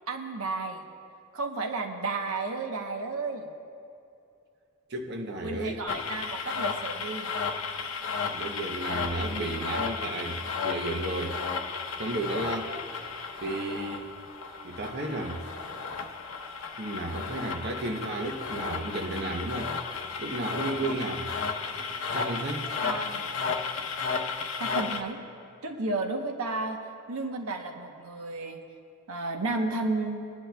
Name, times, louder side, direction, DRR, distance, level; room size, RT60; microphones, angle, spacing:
voice 1, 0.1-0.8 1.3-3.5 5.4-7.3 20.8-20.9 22.8-23.3 24.6-25.2 25.6-28.6 29.1-30.2, right 3 dB, 80° right, 4 dB, 0.9 m, -32 dB
voice 2, 4.9-6.0 8.2-11.4 12.0-12.7 13.4-14.1 14.6-15.4 16.8-19.7 20.2-21.3 22.1-22.7, right 2 dB, 50° right, 2 dB, 0.8 m, -33 dB
sound 1, 5.9-25.0, left 5 dB, 65° left, 0.8 m, -34 dB
24.0 x 10.0 x 2.3 m, 2.6 s
head